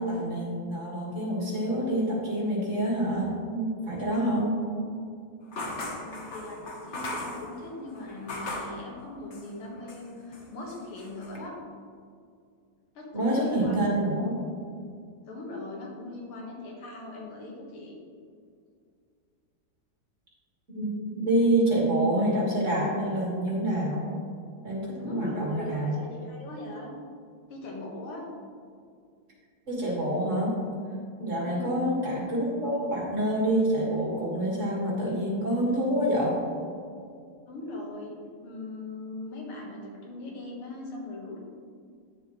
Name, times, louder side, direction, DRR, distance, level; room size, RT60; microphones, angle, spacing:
voice 1, 0.0-4.6 13.1-14.4 20.7-24.1 24.6-26.0 29.7-30.5 31.2-36.4, right 1 dB, 35° right, -4 dB, 2.0 m, -27 dB
sound 1, 5.5-8.8 9.3-10.1 10.3-11.4, left 2 dB, 45° left, 1.0 m, -38 dB
voice 2, 5.9-11.5 12.9-14.1 15.3-17.9 24.9-26.9 27.5-28.2 31.3-31.8 37.5-38.2 38.4-41.4, left 2 dB, 85° left, -2 dB, 2.3 m, -40 dB
9.8 x 6.9 x 3.1 m, 2.3 s
omnidirectional pair, 2.3 m